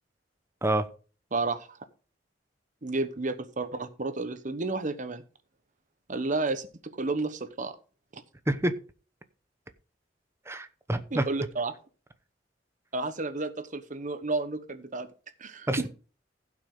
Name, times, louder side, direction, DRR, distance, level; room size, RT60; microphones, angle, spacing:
voice 1, 1.3-1.8 2.8-5.2 6.1-7.8 8.1-8.2 11.1-11.7 12.9-15.1 15.4-15.9, right 3 dB, 45° right, 1.0 m, -31 dB
voice 2, 10.5-11.3 15.7-15.9, right 1 dB, 15° right, 0.8 m, -27 dB
15.5 x 6.2 x 3.8 m
head